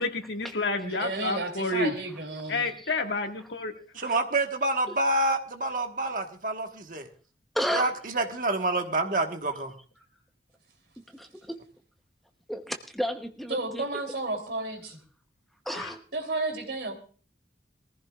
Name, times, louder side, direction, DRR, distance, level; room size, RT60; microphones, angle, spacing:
voice 1, 0.0-1.9 2.5-3.7 15.7-15.9, left 2 dB, 80° left, 4 dB, 1.8 m, -29 dB
voice 2, 0.8-2.7 13.5-15.0 16.1-16.9, right 2 dB, 70° right, 4 dB, 3.2 m, -32 dB
voice 3, 4.0-7.1 7.7-9.7, right 2 dB, 50° right, 5 dB, 1.4 m, -27 dB
voice 4, 7.5-7.9 11.1-11.6 12.5-14.0 15.7-16.0, equal, ahead, 5 dB, 0.8 m, -33 dB
23.0 x 15.0 x 2.4 m, 0.38 s
head